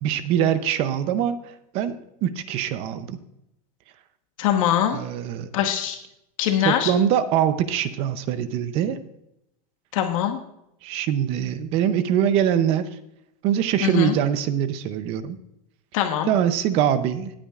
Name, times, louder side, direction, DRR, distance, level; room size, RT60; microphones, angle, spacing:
voice 1, 0.0-3.2 4.9-5.5 6.6-9.0 10.8-12.9 13.4-15.4 16.3-17.3, right 9 dB, 30° right, 12 dB, 0.6 m, -23 dB
voice 2, 4.4-5.0 5.5-6.0 6.4-6.9 9.9-10.4 13.8-14.2 15.9-16.3, left 10 dB, 55° left, 5 dB, 1.2 m, -22 dB
18.5 x 8.6 x 2.4 m, 0.81 s
supercardioid pair, 175°, 20 cm